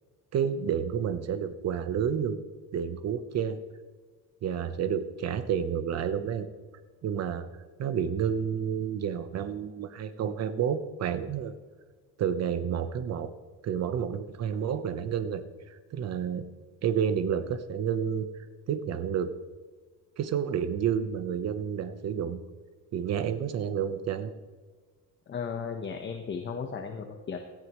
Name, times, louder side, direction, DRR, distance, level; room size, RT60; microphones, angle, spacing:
voice 1, 0.3-2.4 2.7-3.6 4.4-6.5 7.0-7.5 7.8-11.6 12.2-13.3 13.6-15.4 15.7-16.4 16.8-18.3 18.7-19.3 20.2-22.4 22.9-24.3, right 8 dB, 50° right, 11 dB, 1.0 m, -30 dB
voice 2, 25.3-27.4, left 6 dB, 35° left, 5 dB, 1.1 m, -35 dB
18.0 x 14.0 x 3.1 m, 1.4 s
cardioid pair, 155°, 33 cm